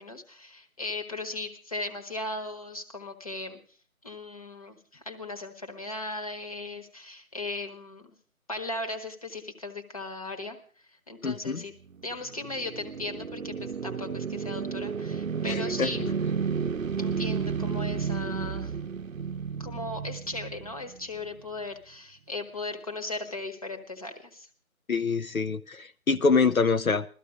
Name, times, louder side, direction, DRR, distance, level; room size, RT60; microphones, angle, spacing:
voice 1, 0.0-3.6 4.0-8.1 8.5-10.6 10.9-11.7 12.0-16.1 17.0-18.7 19.6-24.5, left 2 dB, 25° left, 5 dB, 1.2 m, -37 dB
voice 2, 11.2-11.6 15.5-15.9 24.9-27.1, left 4 dB, 75° left, 10 dB, 0.9 m, -25 dB
sound 1, 11.9-21.2, right 6 dB, 70° right, 0.7 m, -32 dB
16.5 x 14.0 x 5.0 m, 0.43 s
figure-of-eight pair, 165°, 42 cm